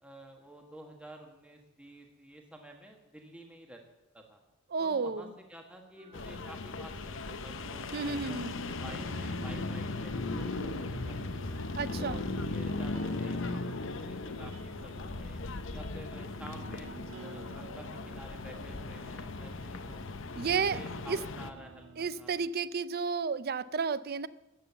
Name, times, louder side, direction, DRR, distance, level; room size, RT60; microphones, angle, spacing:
voice 1, 0.0-3.8 4.1-4.4 4.8-11.5 12.0-13.7 14.0-15.4 15.7-16.9 17.1-20.0 20.3-20.4 20.7-21.9 22.1-22.3, right 1 dB, 5° right, 1.4 m, -51 dB
voice 2, 4.7-5.3 7.9-8.5 11.7-12.2 20.4-20.8 21.1-21.2 22.0-24.3, right 5 dB, 50° right, 0.5 m, -32 dB
sound 1, 5.9-13.7, right 2 dB, 35° right, 1.5 m, -52 dB
sound 2, 6.1-21.5, left 3 dB, 65° left, 0.8 m, -37 dB
sound 3, 8.8-22.5, right 2 dB, 65° right, 2.0 m, -52 dB
14.0 x 9.1 x 6.9 m
head